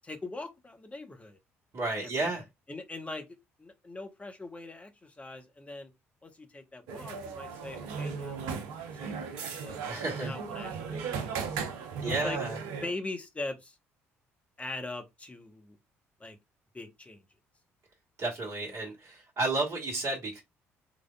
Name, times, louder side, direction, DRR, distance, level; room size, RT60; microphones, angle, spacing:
voice 1, 0.0-1.4 2.0-2.4 2.7-3.2 3.6-5.9 6.2-8.6 9.0-11.3 12.0-12.4 12.8-13.8 14.6-15.8 16.2-16.4 16.7-17.2, left 2 dB, 20° left, 1.0 m, -41 dB
voice 2, 1.7-2.4 9.9-10.3 12.0-12.6 18.2-20.4, right 2 dB, 40° right, 1.4 m, -32 dB
sound 1, 6.9-12.9, right 6 dB, 65° right, 0.7 m, -36 dB
3.9 x 3.3 x 2.3 m
figure-of-eight pair, 50°, 7 cm